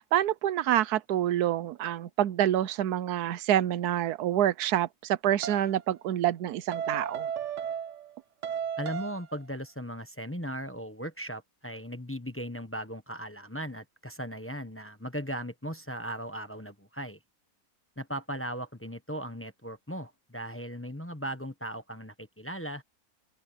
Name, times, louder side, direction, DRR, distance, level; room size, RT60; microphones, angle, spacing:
voice 1, 0.0-7.3, right 12 dB, 85° right, 1.2 m, -27 dB
sound 1, 5.4-5.7 6.7-8.1 8.4-9.3, right 7 dB, 55° right, 1.0 m, -34 dB
voice 2, 8.8-17.2 18.0-22.8, equal, 10° left, 1.0 m, -37 dB
open air
omnidirectional pair, 1.6 m